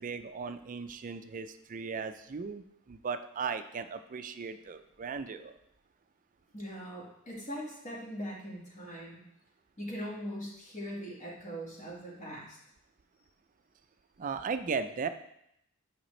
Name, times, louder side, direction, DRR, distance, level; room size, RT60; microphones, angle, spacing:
voice 1, 0.0-5.5 14.2-15.1, right 5 dB, 40° right, 10 dB, 0.4 m, -37 dB
voice 2, 6.5-9.2 9.8-12.6, equal, 35° left, -4 dB, 1.6 m, -41 dB
8.7 x 5.0 x 3.2 m, 0.78 s
head